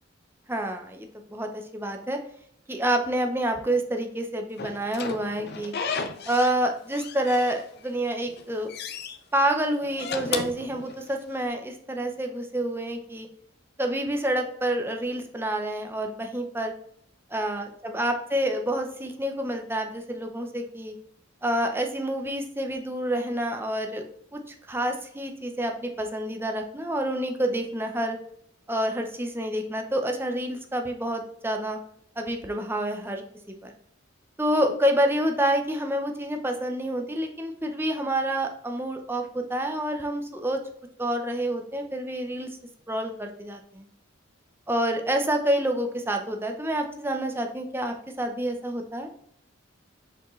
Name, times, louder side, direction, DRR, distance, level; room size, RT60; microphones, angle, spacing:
voice 1, 0.5-2.2 2.7-5.7 6.3-8.7 9.3-13.3 13.8-16.7 17.3-20.9 21.4-24.0 24.3-28.2 28.7-31.8 32.2-33.2 33.6-33.7 34.4-40.6 41.0-42.5 42.9-43.9 44.7-49.1, right 1 dB, 10° right, 4 dB, 0.7 m, -28 dB
Slam / Squeak, 4.6-6.6 6.9-7.9 8.3-9.2 9.8-11.4, left 5 dB, 55° left, 0.6 m, -34 dB
6.4 x 4.9 x 3.2 m, 0.68 s
head